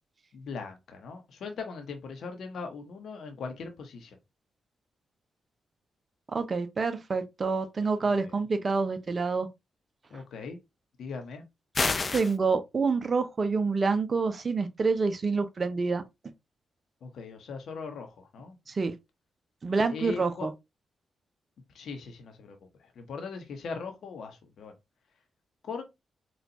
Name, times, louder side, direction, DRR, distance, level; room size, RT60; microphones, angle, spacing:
voice 1, 0.3-4.2 8.0-8.3 10.1-10.6 11.0-11.4 17.0-18.6 19.9-20.5 21.7-24.7 25.6-25.8, left 5 dB, 70° left, 0.9 m, -40 dB
voice 2, 6.3-9.5 10.1-10.2 12.1-16.0 18.7-18.9 19.6-20.5, right 4 dB, 45° right, 0.7 m, -27 dB
sound 1, 11.7-12.3, left 3 dB, 40° left, 0.6 m, -27 dB
4.1 x 2.4 x 2.8 m
supercardioid pair, 50°, 0 cm